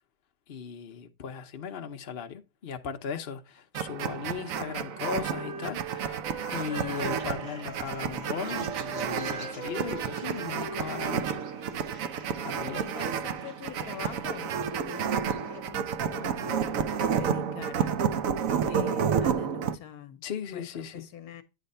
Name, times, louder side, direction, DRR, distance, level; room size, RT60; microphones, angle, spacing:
voice 1, 0.5-6.2 6.5-11.4 12.4-12.8 20.2-21.1, left 7 dB, 50° left, 0.7 m, -37 dB
sound 1, 3.7-19.8, right 7 dB, 65° right, 0.9 m, -31 dB
Wind instrument woodwind instrument, 4.3-12.1, right 3 dB, 5° right, 0.5 m, -42 dB
sound 2, 7.0-15.6, right 2 dB, 85° right, 2.4 m, -52 dB
voice 2, 12.5-18.0 18.7-20.2 20.5-20.6 20.9-21.4, left 9 dB, 65° left, 1.2 m, -43 dB
9.1 x 3.3 x 5.3 m
omnidirectional pair, 1.7 m